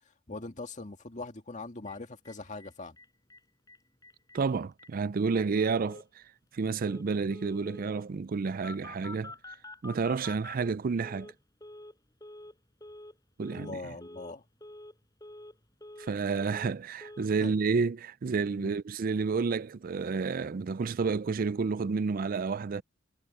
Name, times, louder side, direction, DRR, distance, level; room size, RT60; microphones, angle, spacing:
voice 1, 0.3-3.0 13.5-14.4 17.4-17.5 18.6-18.8, left 3 dB, 40° left, 2.1 m, -41 dB
Telephone, 1.9-2.0 2.3-2.4 2.6-2.7 3.0-3.4 3.7-4.4 4.8-4.9 5.4-6.0 6.8-7.0 7.3-8.0 8.6-11.3 11.6-11.9 12.2-12.5 12.8-13.1 13.4-13.7 14.0-14.3 14.6-14.9 15.2-16.1 16.4-16.8 17.0-17.3, left 2 dB, 20° left, 6.4 m, -47 dB
voice 2, 4.3-6.2 6.5-9.3 9.8-11.3 13.4-13.8 16.0-22.8, right 4 dB, 45° right, 0.4 m, -30 dB
head